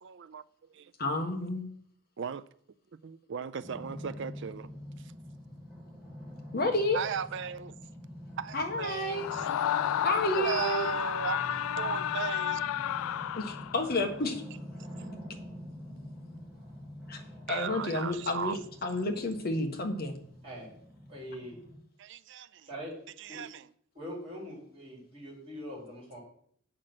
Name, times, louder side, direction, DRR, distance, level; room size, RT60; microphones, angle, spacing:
voice 1, 0.0-0.9 2.2-2.5 3.3-4.7 5.0-5.1 6.9-7.7 8.4-9.4 10.3-11.4 11.8-12.6 17.5-18.6 22.0-22.7 23.2-23.7, right 7 dB, 55° right, 0.4 m, -36 dB
voice 2, 1.0-1.7 6.5-7.0 8.5-9.3 10.0-10.9 13.3-14.4 17.1-17.2 17.5-20.1, left 2 dB, 45° left, 1.3 m, -30 dB
sound 1, 3.6-21.7, equal, 5° right, 2.9 m, -46 dB
Screaming, 9.1-14.0, left 10 dB, 75° left, 0.3 m, -31 dB
voice 3, 21.1-21.5 22.7-22.9 23.3-23.4 23.9-26.2, equal, 30° right, 4.8 m, -42 dB
7.5 x 6.5 x 6.0 m
head